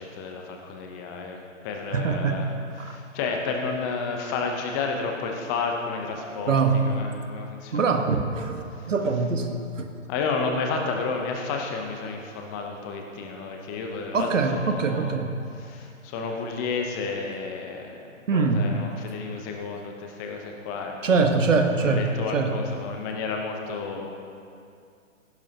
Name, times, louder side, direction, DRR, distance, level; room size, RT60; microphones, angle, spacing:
voice 1, 0.0-1.4 1.6-2.5 2.8-7.9 8.7-8.9 10.1-15.2 15.5-18.0 18.3-21.3 21.7-24.1, left 4 dB, 15° left, 2 dB, 0.7 m, -31 dB
voice 2, 1.9-2.5 2.8-3.0 6.5-6.9 7.7-9.9 14.1-15.3 18.3-18.8 21.0-22.5, right 4 dB, 65° right, 5 dB, 1.3 m, -23 dB
16.5 x 11.0 x 2.9 m, 2.4 s
figure-of-eight pair, 135°, 40 cm